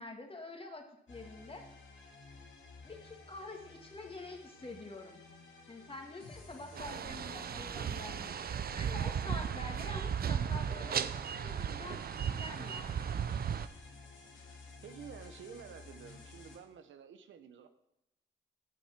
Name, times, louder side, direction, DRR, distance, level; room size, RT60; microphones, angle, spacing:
voice 1, 0.0-1.7 2.8-5.2 5.7-11.0 11.4-13.1, left 2 dB, 30° left, 3 dB, 2.0 m, -47 dB
sound 1, 1.1-16.6, left 3 dB, 85° left, 1.9 m, -54 dB
voice 2, 6.7-7.2 14.8-17.7, right 7 dB, 80° right, 9 dB, 0.8 m, -51 dB
sound 2, 6.8-13.7, right 8 dB, 50° right, 0.5 m, -36 dB
8.5 x 6.3 x 5.8 m, 0.88 s
supercardioid pair, 50°, 20 cm